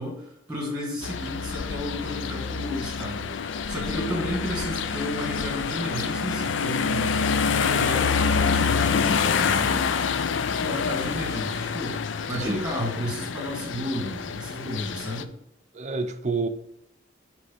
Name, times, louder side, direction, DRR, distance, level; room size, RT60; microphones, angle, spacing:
voice 1, 0.0-9.8 10.5-15.3, left 1 dB, 5° right, 2.1 m, -33 dB
sound 1, 1.0-15.2, left 5 dB, 70° left, 0.4 m, -27 dB
voice 2, 12.3-12.7 15.7-16.5, right 3 dB, 35° right, 0.6 m, -28 dB
7.9 x 3.4 x 6.0 m
head